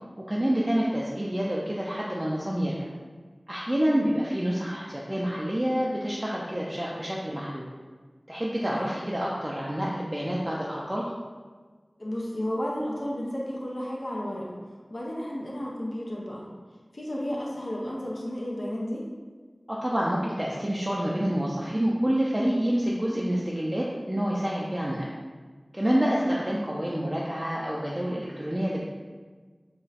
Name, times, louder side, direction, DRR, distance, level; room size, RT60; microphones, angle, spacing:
voice 1, 0.2-2.9 3.5-7.7 8.3-11.0 19.7-25.0 25.7-28.8, equal, 20° right, -5 dB, 0.3 m, -28 dB
voice 2, 12.0-14.5 14.9-16.4 16.9-19.1 25.8-26.1, left 1 dB, 70° left, -4 dB, 0.5 m, -32 dB
2.4 x 2.1 x 3.9 m, 1.5 s
wide cardioid pair, 55°, 0 cm